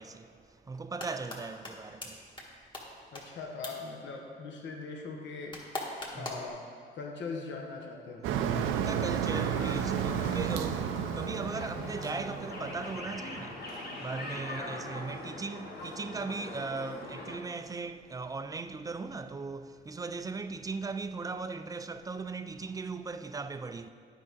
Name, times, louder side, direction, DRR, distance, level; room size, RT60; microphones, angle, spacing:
voice 1, 0.0-2.2 6.1-6.3 8.5-23.9, right 4 dB, 20° right, 0.3 m, -38 dB
sound 1, 0.7-1.4 1.6-1.7 2.0-2.1 2.4-2.5 2.7-2.8 3.2-3.3 3.6-3.7 5.5-6.5, left 2 dB, 25° left, 1.5 m, -38 dB
voice 2, 3.1-5.6 6.1-6.6 6.9-8.3, left 4 dB, 70° left, 1.1 m, -40 dB
Motor vehicle (road), 8.2-13.2, right 8 dB, 85° right, 0.5 m, -32 dB
sound 2, 9.2-17.4, left 2 dB, 55° left, 1.4 m, -42 dB
9.9 x 4.8 x 4.1 m
cardioid pair, 90°, 20 cm